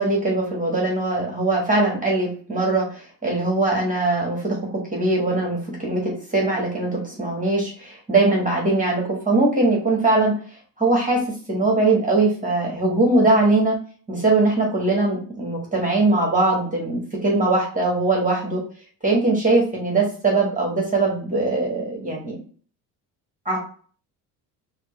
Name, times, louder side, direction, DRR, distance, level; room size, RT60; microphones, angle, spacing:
voice 1, 0.0-10.3 10.8-11.2 11.5-13.8 14.1-18.6 19.0-22.4 23.5-23.6, right 2 dB, 15° right, -2 dB, 1.6 m, -21 dB
4.2 x 2.3 x 3.2 m, 0.43 s
hypercardioid pair, 70°, 48 cm